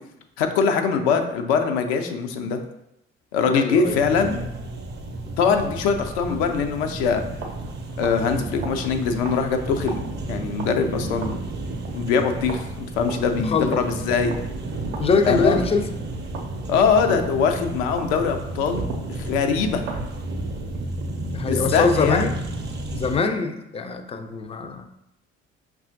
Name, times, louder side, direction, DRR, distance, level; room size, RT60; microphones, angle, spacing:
voice 1, 0.4-2.6 3.3-4.4 5.4-7.2 8.0-10.0 10.3-11.4 11.9-14.3 15.3-15.7 16.7-19.8 21.5-22.2, left 5 dB, 70° left, 6 dB, 0.5 m, -22 dB
voice 2, 3.5-4.0 13.4-13.8 15.0-15.9 21.2-22.3 22.9-24.8, left 4 dB, 20° left, 7 dB, 0.4 m, -23 dB
sound 1, 3.8-23.2, right 2 dB, 30° right, 0.6 m, -32 dB
sound 2, 7.3-17.5 18.0-20.2, right 3 dB, 75° right, 0.6 m, -40 dB
5.4 x 2.3 x 2.5 m, 0.83 s
figure-of-eight pair, 45°, 34 cm